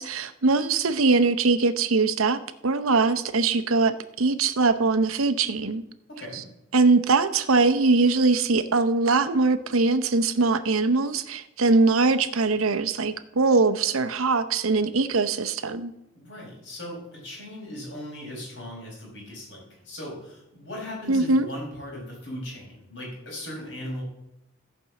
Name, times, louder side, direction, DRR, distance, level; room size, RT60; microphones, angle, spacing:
voice 1, 0.0-5.8 6.3-6.4 6.7-15.9 21.1-21.5, right 3 dB, 85° right, 11 dB, 0.8 m, -22 dB
voice 2, 6.1-6.4 16.1-24.0, left 1 dB, 55° left, -2 dB, 4.9 m, -38 dB
14.5 x 5.3 x 7.1 m, 0.87 s
head